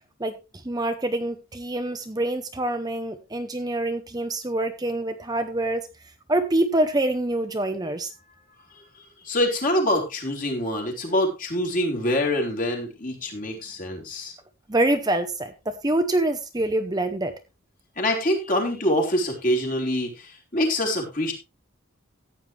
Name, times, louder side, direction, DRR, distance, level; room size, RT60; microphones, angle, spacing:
voice 1, 0.2-5.9 6.3-8.1 14.7-17.4, right 1 dB, 20° right, 8 dB, 0.8 m, -26 dB
voice 2, 8.7-14.3 18.0-21.3, left 1 dB, 40° left, 1 dB, 3.9 m, -25 dB
14.5 x 9.3 x 3.3 m, 0.28 s
head